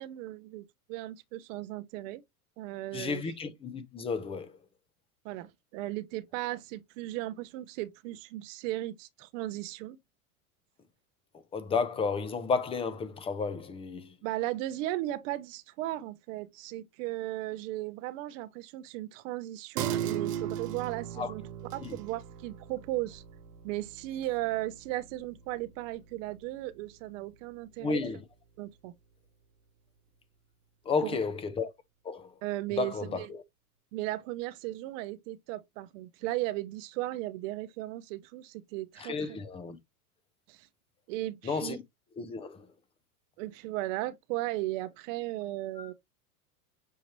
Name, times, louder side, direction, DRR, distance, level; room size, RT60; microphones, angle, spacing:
voice 1, 0.0-2.2 2.6-3.2 5.2-10.0 14.2-21.4 21.7-23.2 23.6-28.0 28.6-28.9 31.0-31.2 32.4-33.3 33.9-39.4 40.5-40.7 41.1-41.8 43.4-45.9, right 16 dB, 55° right, 0.7 m, -36 dB
voice 2, 2.9-4.5 11.5-14.1 21.2-21.3 21.8-22.0 27.8-28.2 30.9-31.7 32.0-32.3 32.8-33.4 39.0-39.8 41.4-41.8 42.2-42.6 45.8-45.9, left 4 dB, 15° left, 0.5 m, -32 dB
sound 1, 19.8-26.8 27.2-27.3, right 10 dB, 85° right, 0.9 m, -38 dB
6.5 x 2.7 x 3.0 m
hypercardioid pair, 110°, 46 cm